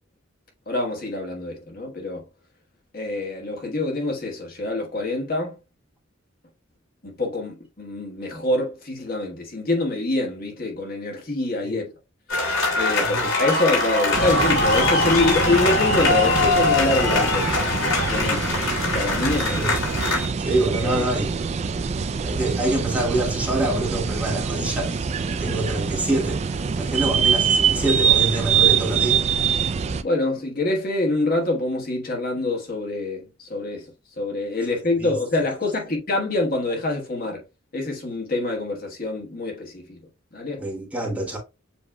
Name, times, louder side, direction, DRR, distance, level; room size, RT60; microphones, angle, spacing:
voice 1, 0.7-2.3 2.9-5.6 7.0-11.8 12.8-13.1 13.4-17.6 18.1-18.6 18.9-19.7 20.8-21.0 30.0-33.9 34.2-37.4 37.7-40.0 40.3-40.6, left 2 dB, 45° left, 1.4 m, -25 dB
sound 1, 12.3-20.3, left 2 dB, 90° left, 2.7 m, -22 dB
voice 2, 13.0-13.3 19.5-19.7 20.4-21.3 22.2-29.3 35.0-35.1 40.6-41.4, right 2 dB, 5° right, 1.2 m, -26 dB
sound 2, 14.1-30.0, right 6 dB, 35° right, 0.3 m, -24 dB
7.2 x 3.0 x 2.2 m
head